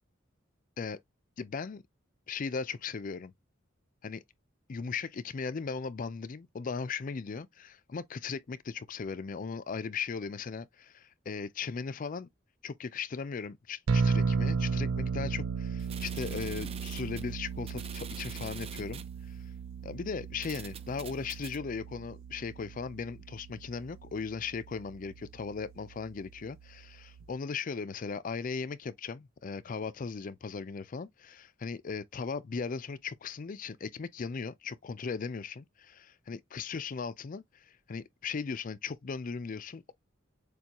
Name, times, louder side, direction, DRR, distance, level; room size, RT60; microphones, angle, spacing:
voice 1, 1.4-1.8 2.3-3.3 4.0-4.2 4.7-12.3 12.6-19.4 19.8-39.9, left 5 dB, 40° left, 0.4 m, -38 dB
sound 1, 13.9-27.3, right 5 dB, 80° right, 0.4 m, -35 dB
sound 2, 15.8-19.1 19.9-20.0 20.4-21.6, right 6 dB, 30° right, 0.5 m, -46 dB
6.8 x 2.3 x 2.9 m
head